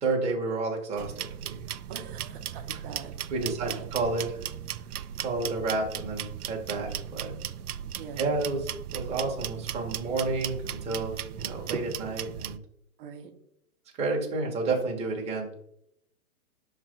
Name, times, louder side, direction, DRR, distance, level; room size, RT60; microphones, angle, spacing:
voice 1, 0.0-1.3 1.5-1.6 3.3-4.3 5.2-7.3 8.2-12.6 14.0-15.5, right 3 dB, 15° right, 0 dB, 1.1 m, -30 dB
sound 1, 1.0-12.6, right 10 dB, 90° right, 0.6 m, -37 dB
voice 2, 1.9-3.1 3.4-3.9 7.9-8.4 13.0-13.3, right 7 dB, 40° right, 5 dB, 1.0 m, -43 dB
5.7 x 3.3 x 5.1 m, 0.76 s
hypercardioid pair, 150°, 43 cm